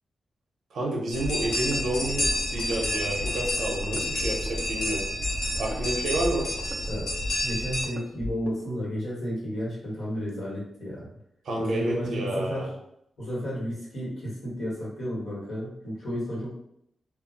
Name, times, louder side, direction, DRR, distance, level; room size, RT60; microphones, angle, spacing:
voice 1, 0.7-5.0 5.5-6.5 11.4-12.7, right 1 dB, 70° right, -1 dB, 0.7 m, -30 dB
sound 1, 1.1-7.8, left 1 dB, 80° left, 1.1 m, -29 dB
sound 2, 1.2-8.8, left 1 dB, 25° right, 0.5 m, -39 dB
voice 2, 7.4-11.1 11.6-12.7 13.2-16.5, equal, 60° left, -6 dB, 1.3 m, -32 dB
2.3 x 2.0 x 3.8 m, 0.74 s
wide cardioid pair, 145°, 0 cm